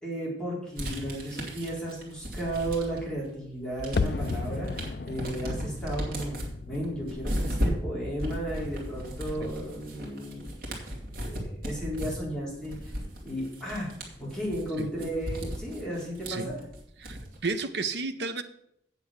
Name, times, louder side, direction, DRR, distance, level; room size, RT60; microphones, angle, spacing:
voice 1, 0.0-6.3 6.7-10.7 11.3-12.9 13.2-13.9 14.2-16.7 17.1-17.3, right 1 dB, 5° left, 3.9 m, -34 dB
sound 1, 0.8-3.2 3.5-17.5, equal, 50° right, 2.6 m, -35 dB
sound 2, 4.0-8.9 9.2-9.3, left 4 dB, 60° left, 0.4 m, -35 dB
voice 2, 17.0-18.4, right 4 dB, 70° right, 0.8 m, -32 dB
8.4 x 7.1 x 7.1 m
head